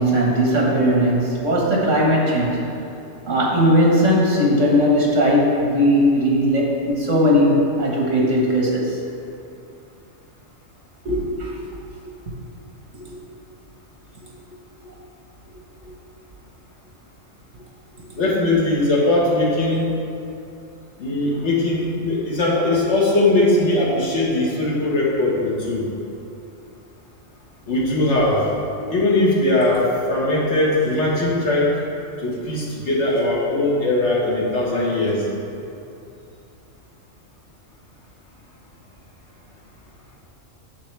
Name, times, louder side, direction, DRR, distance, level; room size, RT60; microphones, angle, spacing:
voice 1, 0.0-2.6 3.3-9.0 11.1-11.6 13.1-13.2 18.1-18.2, equal, 70° right, -3 dB, 1.9 m, -18 dB
voice 2, 18.2-19.9 21.0-25.9 27.7-28.5 28.9-31.7 32.2-35.3, left 2 dB, 60° left, -4 dB, 1.8 m, -20 dB
8.3 x 7.2 x 3.4 m, 2.7 s
omnidirectional pair, 1.3 m